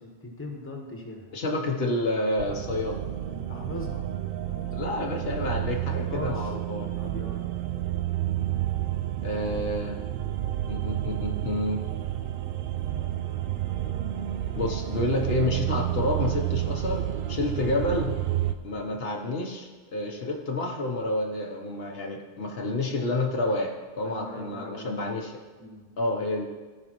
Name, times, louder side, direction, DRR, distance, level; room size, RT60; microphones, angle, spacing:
voice 1, 0.0-1.3 3.2-4.0 6.1-6.5 7.0-7.4 24.0-25.0 25.6-25.9, left 2 dB, 10° left, 0 dB, 1.1 m, -40 dB
voice 2, 1.3-3.0 4.7-6.9 9.2-10.0 10.7-11.8 14.5-18.2 18.6-25.3 26.0-26.5, left 2 dB, 65° left, 1 dB, 1.1 m, -29 dB
sound 1, 2.4-18.6, right 13 dB, 65° right, 0.7 m, -30 dB
14.0 x 5.2 x 3.0 m, 1.3 s
omnidirectional pair, 1.1 m